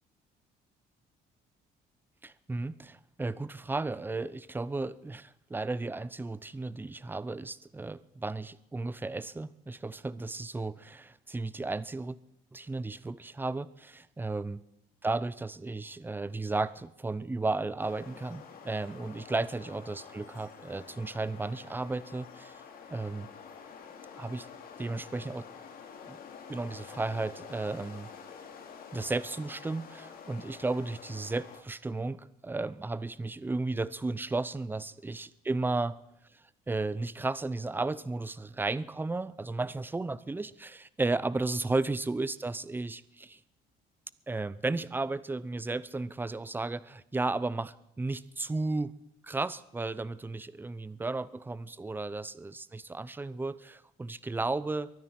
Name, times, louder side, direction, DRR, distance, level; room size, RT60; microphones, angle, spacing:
voice 1, 2.2-12.2 12.5-14.6 15.0-22.5 22.9-23.3 24.2-24.5 24.8-25.5 26.1-26.2 26.5-28.1 28.9-36.0 36.7-43.4 44.3-48.9 49.2-54.9, right 3 dB, 10° right, 18 dB, 0.6 m, -34 dB
sound 1, 17.8-31.6, left 6 dB, 60° left, 2.5 m, -48 dB
23.5 x 9.5 x 5.8 m, 0.83 s
cardioid pair, 110°, 17 cm